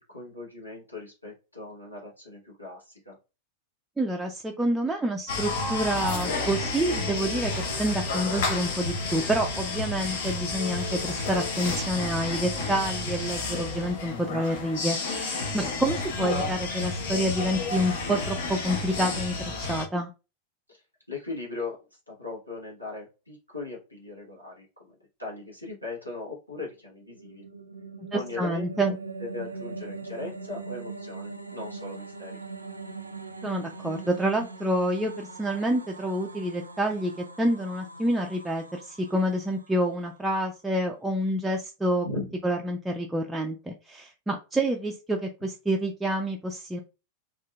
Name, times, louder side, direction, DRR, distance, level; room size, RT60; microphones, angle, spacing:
voice 1, 0.0-3.2 20.7-20.8 21.1-27.4 28.1-28.9 29.2-32.4 42.0-42.3, left 3 dB, 85° left, -3 dB, 1.0 m, -39 dB
voice 2, 4.0-7.5 7.8-20.1 28.1-29.0 33.4-42.1 42.4-46.8, right 1 dB, 5° right, 1 dB, 0.3 m, -28 dB
sound 1, 5.3-19.9, left 3 dB, 55° left, 0.8 m, -31 dB
sound 2, 26.9-40.2, right 3 dB, 85° right, 0.3 m, -41 dB
2.7 x 2.4 x 2.2 m, 0.30 s
figure-of-eight pair, 90°, 0 cm